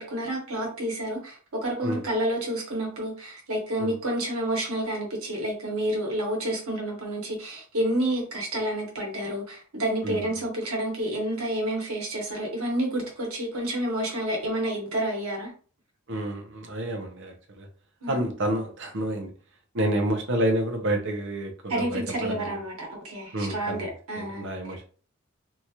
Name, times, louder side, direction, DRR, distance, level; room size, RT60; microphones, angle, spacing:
voice 1, 0.0-15.5 18.0-18.3 21.7-24.5, right 1 dB, 90° right, -1 dB, 1.2 m, -29 dB
voice 2, 10.0-10.4 16.1-17.7 18.1-19.3 19.7-22.6 23.3-24.9, right 1 dB, 60° right, 4 dB, 0.7 m, -29 dB
2.8 x 2.4 x 2.9 m, 0.40 s
head